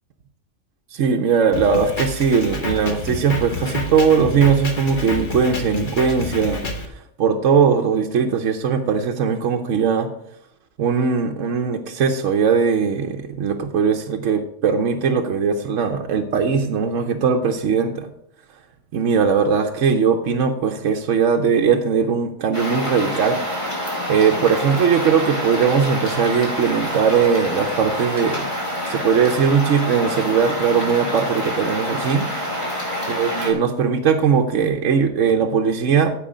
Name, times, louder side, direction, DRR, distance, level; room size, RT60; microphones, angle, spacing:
voice 1, 0.9-6.9 7.2-10.1 10.8-18.1 18.9-23.4 24.1-28.5 28.8-32.3 32.6-36.1, right 6 dB, 75° right, 3 dB, 1.1 m, -19 dB
Drum kit, 1.5-6.9, left 2 dB, 40° left, 1.3 m, -29 dB
sound 1, 22.5-33.5, equal, 25° left, 2.9 m, -27 dB
14.0 x 5.1 x 5.0 m, 0.72 s
omnidirectional pair, 1.3 m